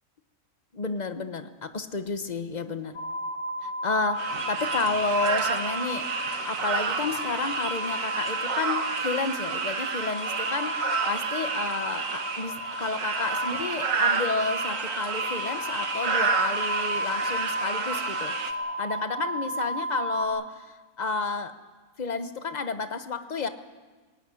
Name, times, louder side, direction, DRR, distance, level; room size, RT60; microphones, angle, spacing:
voice 1, 0.7-3.0 3.6-6.1 6.4-18.3 18.8-21.6 22.0-23.5, left 4 dB, 35° left, 9 dB, 1.1 m, -31 dB
sound 1, 2.9-20.2, equal, 80° left, 3.3 m, -34 dB
sound 2, 4.2-18.5, right 5 dB, 65° right, 1.7 m, -30 dB
19.0 x 17.5 x 9.9 m, 1.3 s
omnidirectional pair, 1.5 m